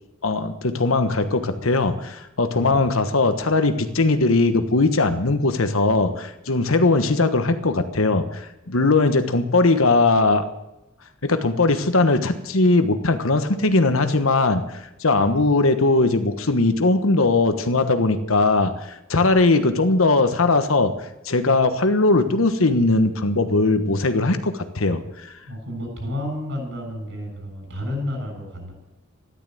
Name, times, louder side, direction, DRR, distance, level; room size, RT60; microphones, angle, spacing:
voice 1, 0.2-8.4 8.7-10.4 11.2-14.6 15.0-20.9 21.2-25.0, left 3 dB, 80° left, 9 dB, 1.3 m, -19 dB
voice 2, 25.4-28.7, left 1 dB, 60° right, 3 dB, 7.2 m, -31 dB
14.0 x 11.5 x 7.9 m, 0.94 s
head